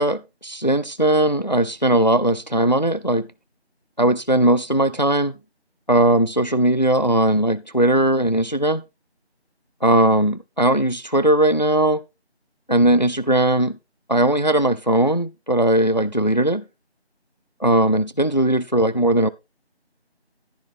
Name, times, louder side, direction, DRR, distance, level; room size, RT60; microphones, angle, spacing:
voice 1, 0.0-3.3 4.0-5.3 5.9-8.8 9.8-12.0 12.7-13.8 14.1-16.6 17.6-19.3, right 1 dB, 45° left, 0.5 m, -19 dB
12.0 x 10.5 x 2.5 m
figure-of-eight pair, 180°, 33 cm